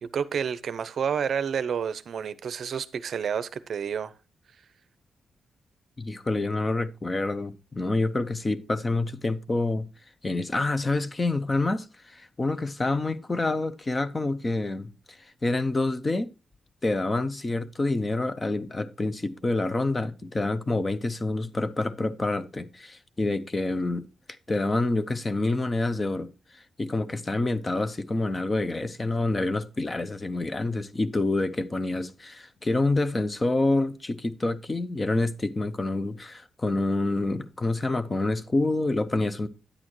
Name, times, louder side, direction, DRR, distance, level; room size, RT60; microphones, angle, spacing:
voice 1, 0.0-4.1, right 7 dB, 55° right, 0.6 m, -29 dB
voice 2, 6.0-9.9 10.2-14.9 15.4-16.3 16.8-24.1 24.5-26.3 26.8-39.5, left 2 dB, 20° left, 0.6 m, -27 dB
9.8 x 8.6 x 3.0 m
wide cardioid pair, 170°, 0 cm